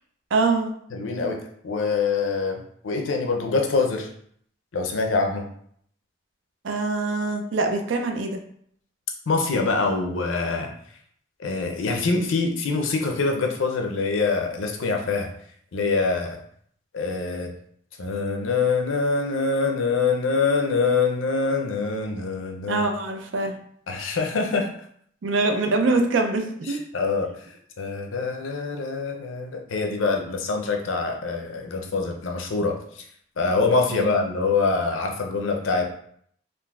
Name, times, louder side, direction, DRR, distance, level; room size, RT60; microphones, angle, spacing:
voice 1, 0.3-0.7 6.6-8.4 22.7-23.6 25.2-26.8 33.9-34.2, right 3 dB, 70° right, 5 dB, 0.5 m, -24 dB
voice 2, 0.9-4.1 4.7-5.4 9.3-10.7 11.4-15.3 15.7-16.4 16.9-17.5 18.0-22.8 23.9-24.7 26.7-27.3 27.8-32.8 33.4-35.8, left 4 dB, 85° left, 3 dB, 0.5 m, -24 dB
3.7 x 2.5 x 2.3 m, 0.65 s
head